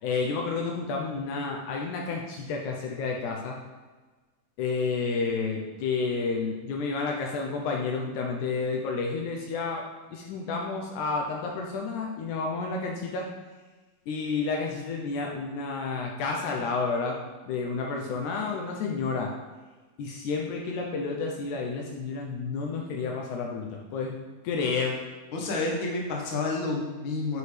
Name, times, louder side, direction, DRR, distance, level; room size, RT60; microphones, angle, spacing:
voice 1, 0.0-3.6 4.6-9.9 10.1-13.3 14.1-17.2 17.4-19.3 20.0-24.1 24.4-25.0, left 4 dB, 75° left, 0 dB, 2.0 m, -30 dB
voice 2, 25.3-27.4, left 3 dB, 50° left, -1 dB, 1.5 m, -29 dB
9.6 x 4.8 x 3.3 m, 1.3 s
omnidirectional pair, 3.8 m